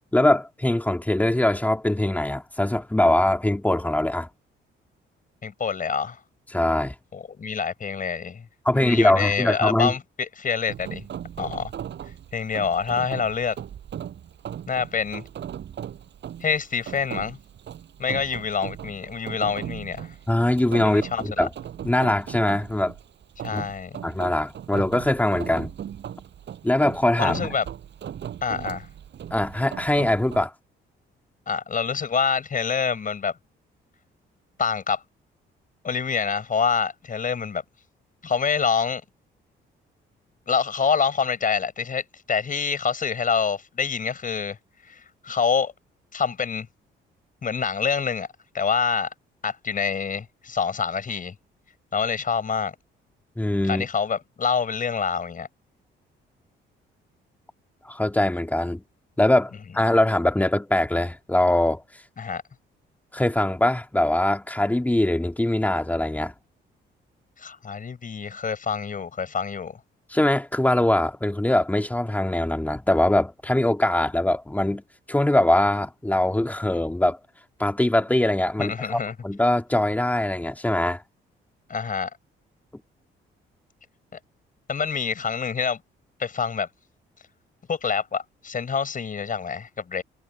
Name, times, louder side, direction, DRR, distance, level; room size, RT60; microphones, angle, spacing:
voice 1, 0.1-4.3 6.5-6.9 8.7-9.9 20.3-21.5 21.8-22.9 23.5-23.6 24.0-25.7 26.6-27.5 29.3-30.5 53.4-53.9 57.8-58.8 59.2-61.8 63.1-66.3 70.1-74.8 75.1-77.2 77.6-81.0, left 1 dB, 10° left, 2.1 m, -22 dB
voice 2, 5.4-6.2 7.1-8.4 8.7-11.0 11.4-11.7 12.3-13.6 14.7-15.2 16.4-17.4 18.0-20.1 20.8-21.5 23.4-24.0 27.2-27.6 28.4-28.9 31.5-33.3 34.6-35.0 35.8-37.6 38.2-39.0 40.5-44.6 44.9-45.7 46.1-46.7 47.4-48.3 48.5-49.1 49.4-51.3 51.9-52.7 53.7-55.5 62.2-62.4 67.4-69.8 78.6-79.1 81.7-82.1 84.1-84.2 84.7-85.8 86.2-86.7 87.7-90.0, left 6 dB, 45° left, 6.6 m, -26 dB
Rain, 10.7-30.5, right 9 dB, 65° right, 5.8 m, -38 dB
cardioid pair, 90°, 20 cm